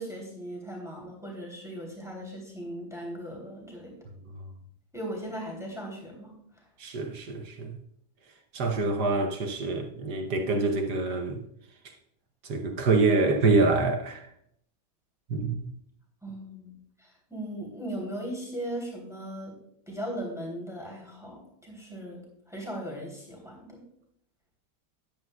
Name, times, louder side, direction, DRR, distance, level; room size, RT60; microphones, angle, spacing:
voice 1, 0.0-3.9 4.9-6.6 16.2-16.7 17.0-19.5 19.9-22.2 22.5-23.8, right 1 dB, ahead, 2.9 m, -38 dB
voice 2, 6.8-7.8 8.5-11.4 12.4-14.3 15.3-15.7, right 3 dB, 60° right, 1.2 m, -26 dB
13.5 x 10.5 x 2.3 m
omnidirectional pair, 2.3 m